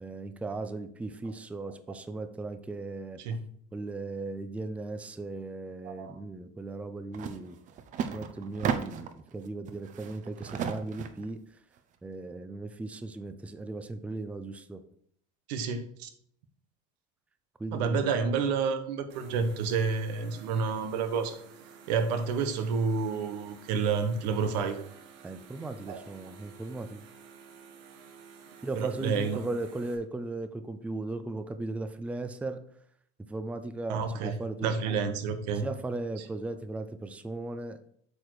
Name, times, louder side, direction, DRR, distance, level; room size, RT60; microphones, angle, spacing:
voice 1, 0.0-3.2 3.7-7.6 8.1-11.4 12.0-14.8 17.6-18.1 25.2-27.1 28.6-32.6 33.2-35.0 35.6-37.8, right 2 dB, 5° right, 9 dB, 0.5 m, -37 dB
voice 2, 5.8-6.2 15.5-16.1 17.7-21.4 21.9-24.8 25.9-26.0 28.7-29.4 33.9-35.6 36.2-36.3, right 5 dB, 90° right, 8 dB, 1.2 m, -29 dB
sound 1, 7.1-7.4 7.7-9.2 9.7-11.3, right 7 dB, 40° right, 0.7 m, -34 dB
sound 2, 19.1-29.9, right 6 dB, 65° right, 1.5 m, -52 dB
8.3 x 4.9 x 4.8 m, 0.65 s
cardioid pair, 140°, 20 cm